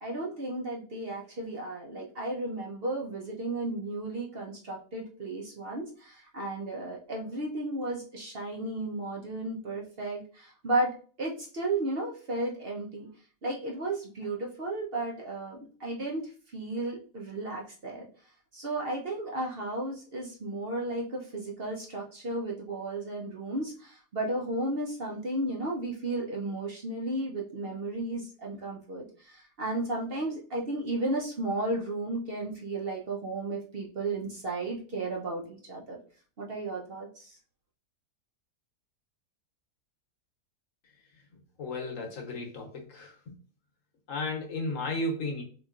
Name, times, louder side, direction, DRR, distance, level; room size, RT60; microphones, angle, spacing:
voice 1, 0.0-10.9 11.2-13.1 13.4-16.2 16.5-18.1 18.5-36.0 36.4-37.4, right 2 dB, 50° right, -2 dB, 0.7 m, -34 dB
voice 2, 41.6-43.3 44.1-45.4, left 2 dB, 60° left, 1 dB, 1.2 m, -34 dB
4.1 x 2.9 x 2.4 m, 0.40 s
omnidirectional pair, 1.7 m